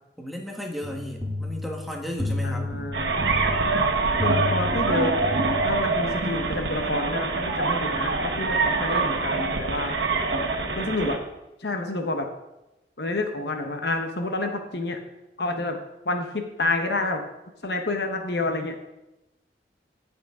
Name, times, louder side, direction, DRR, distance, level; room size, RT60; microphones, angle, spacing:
voice 1, 0.2-2.7, equal, ahead, 0 dB, 1.4 m, -34 dB
sound 1, 0.8-6.1, left 2 dB, 20° right, 1.6 m, -32 dB
voice 2, 2.4-3.2 4.2-5.2 5.6-9.9 10.8-11.2 11.6-12.3 13.0-15.0 15.4-15.8 16.0-17.2 17.6-18.8, left 2 dB, 65° left, 5 dB, 1.1 m, -28 dB
sound 2, 2.9-11.2, right 3 dB, 70° right, 1.3 m, -25 dB
16.5 x 6.7 x 3.7 m, 0.96 s
head